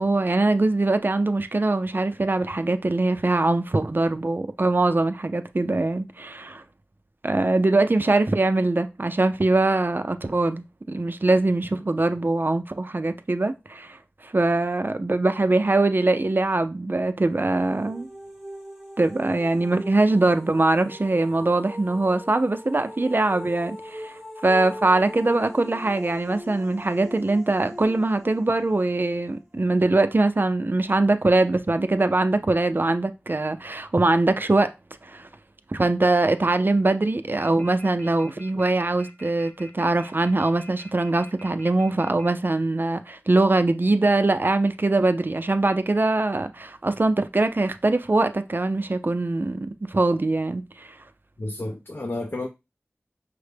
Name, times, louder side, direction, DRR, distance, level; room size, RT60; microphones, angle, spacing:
voice 1, 0.0-6.6 7.2-18.1 19.0-24.1 24.4-34.7 35.0-35.3 35.7-50.9, right 2 dB, 45° right, 0.4 m, -22 dB
sound 1, 17.3-30.1, equal, 5° right, 0.9 m, -41 dB
sound 2, 37.4-42.3, right 1 dB, 20° left, 0.8 m, -45 dB
voice 2, 51.4-52.5, left 2 dB, 55° left, 0.6 m, -31 dB
5.7 x 2.1 x 3.3 m
wide cardioid pair, 45°, 5 cm